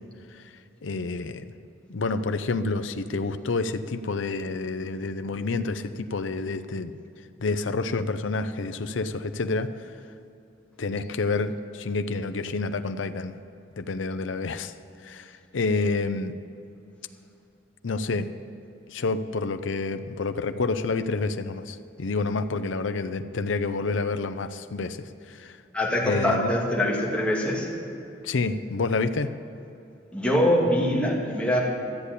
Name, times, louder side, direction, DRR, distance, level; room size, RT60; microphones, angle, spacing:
voice 1, 0.3-1.5 1.9-6.9 7.4-9.9 10.8-13.4 13.8-14.7 15.0-16.3 17.8-18.3 18.9-25.6 26.0-26.5 28.2-29.3, left 3 dB, 85° left, 10 dB, 0.6 m, -29 dB
voice 2, 25.7-27.7 30.1-31.6, left 1 dB, 5° left, -5 dB, 2.5 m, -23 dB
13.5 x 8.2 x 8.3 m, 2.7 s
head